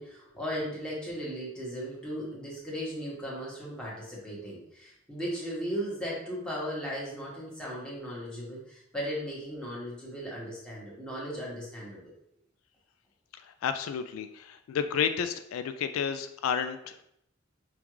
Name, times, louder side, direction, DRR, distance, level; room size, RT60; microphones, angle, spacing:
voice 1, 0.0-12.1, equal, 5° left, -6 dB, 1.2 m, -37 dB
voice 2, 13.6-17.0, left 7 dB, 90° left, 9 dB, 0.3 m, -31 dB
5.3 x 2.4 x 3.0 m, 0.75 s
head